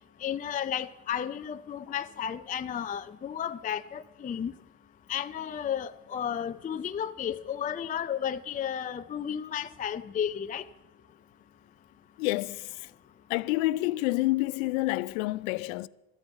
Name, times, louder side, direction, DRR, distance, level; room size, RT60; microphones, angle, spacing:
voice 1, 0.2-4.5 5.1-10.7, left 9 dB, 20° left, 0.4 m, -33 dB
voice 2, 12.2-12.9 13.3-15.9, left 19 dB, 90° left, 0.5 m, -28 dB
13.0 x 9.7 x 8.0 m
supercardioid pair, 85°, 40 cm